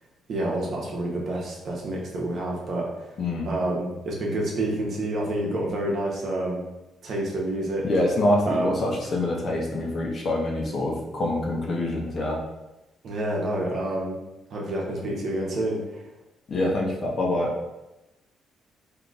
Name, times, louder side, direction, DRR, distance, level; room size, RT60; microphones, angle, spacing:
voice 1, 0.3-2.9 3.4-6.6 7.0-7.9 8.5-8.8 13.0-14.2 14.5-16.0, right 1 dB, 60° right, -2 dB, 0.9 m, -28 dB
voice 2, 7.8-12.4 16.5-17.5, left 1 dB, 50° left, -1 dB, 0.8 m, -25 dB
3.7 x 2.8 x 2.5 m, 0.99 s
cardioid pair, 90°, 0 cm